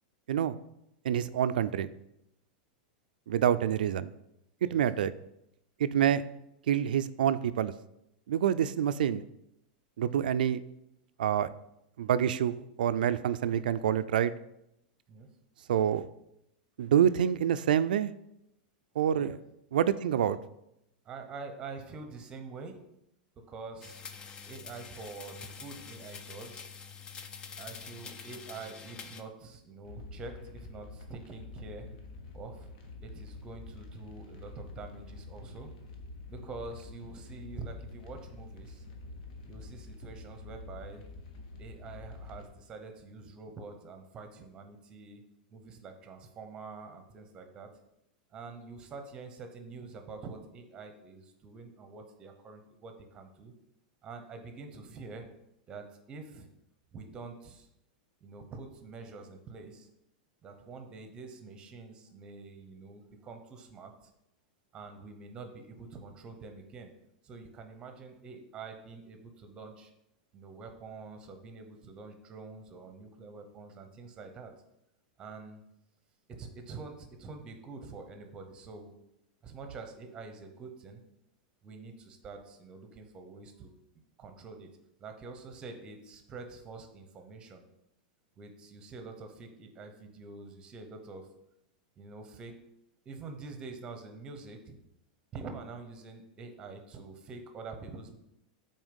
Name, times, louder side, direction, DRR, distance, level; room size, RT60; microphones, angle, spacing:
voice 1, 1.0-1.9 3.3-4.1 4.6-5.1 5.8-6.2 6.7-7.7 8.3-9.2 10.0-10.6 11.2-11.5 12.0-14.3 15.7-16.1 16.8-18.1 19.0-19.3 19.7-20.4, right 9 dB, 90° right, 14 dB, 0.4 m, -27 dB
voice 2, 19.0-19.3 21.0-22.8 23.4-24.0 24.5-26.7 27.6-31.9 32.3-32.7 33.0-35.7 36.3-38.9 39.5-41.0 41.6-45.2 45.5-47.7 48.3-53.5 54.0-55.3 55.7-56.5 56.9-57.7 58.2-59.9 60.4-64.1 64.7-66.9 67.2-69.9 70.3-74.5 75.2-75.6 76.3-78.9 79.4-81.0 81.6-83.7 84.2-84.7 85.0-87.6 88.4-91.3 92.0-92.6 93.0-94.8 95.3-98.2, right 4 dB, 20° right, 6 dB, 0.8 m, -46 dB
sound 1, 23.8-29.2, left 6 dB, 20° left, 0.4 m, -46 dB
sound 2, 29.8-42.5, left 3 dB, 60° left, 1.2 m, -47 dB
6.3 x 4.3 x 5.3 m, 0.84 s
supercardioid pair, 160°, 5 cm